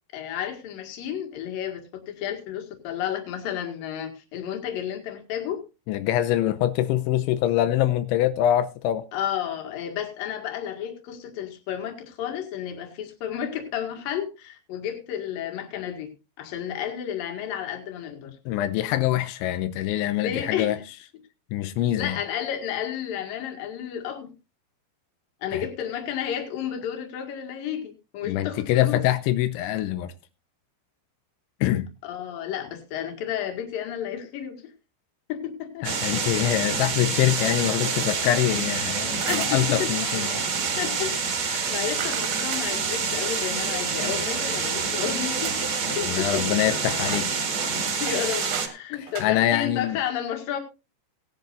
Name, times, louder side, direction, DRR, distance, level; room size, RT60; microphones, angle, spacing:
voice 1, 0.1-5.6 9.1-16.1 16.4-18.4 20.2-20.8 22.0-24.3 25.4-29.0 32.0-34.7 35.3-35.9 39.3-39.9 40.8-45.7 46.0-46.4 48.0-50.6, left 9 dB, 60° left, 3.4 m, -32 dB
voice 2, 5.9-9.0 18.5-20.8 21.5-22.2 25.5-25.7 28.2-30.1 31.6-31.9 35.8-40.4 41.5-41.7 46.0-47.4 48.9-50.0, left 13 dB, 90° left, 3.1 m, -24 dB
sound 1, 35.8-48.7, right 5 dB, 40° right, 1.9 m, -27 dB
sound 2, 39.1-39.7 40.5-40.8 42.0-42.7 44.0-44.5 45.0-45.1 45.4-45.7 46.0-46.7 47.0-48.8 49.1-49.3, right 12 dB, 70° right, 2.6 m, -36 dB
18.5 x 10.5 x 2.6 m
omnidirectional pair, 5.2 m